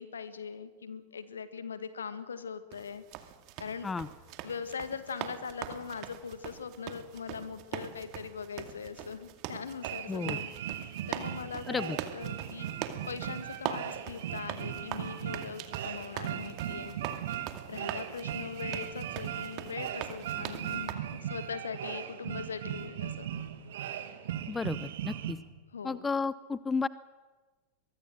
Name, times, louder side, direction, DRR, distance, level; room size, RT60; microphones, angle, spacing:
voice 1, 0.0-3.0 3.6-3.9 4.4-10.5 11.1-12.8 13.1-17.0 17.7-23.3 25.7-26.1, left 6 dB, 70° left, 12 dB, 1.8 m, -41 dB
sound 1, 2.7-20.9, right 11 dB, 40° right, 2.2 m, -42 dB
sound 2, 9.8-25.3, right 10 dB, 55° right, 2.0 m, -38 dB
voice 2, 24.5-25.4 25.8-26.9, left 4 dB, 15° left, 19 dB, 0.6 m, -32 dB
23.5 x 23.0 x 6.5 m, 1.3 s
figure-of-eight pair, 90°, 0 cm